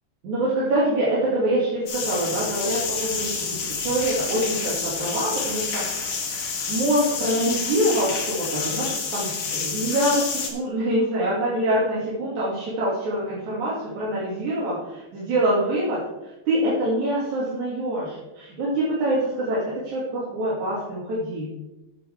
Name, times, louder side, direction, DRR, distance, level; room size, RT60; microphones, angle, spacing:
voice 1, 0.2-6.2 6.7-21.5, right 1 dB, 80° right, -7 dB, 3.8 m, -25 dB
sound 1, 1.9-10.5, left 5 dB, 75° left, 3.1 m, -28 dB
12.0 x 9.5 x 3.5 m, 0.95 s
omnidirectional pair, 3.4 m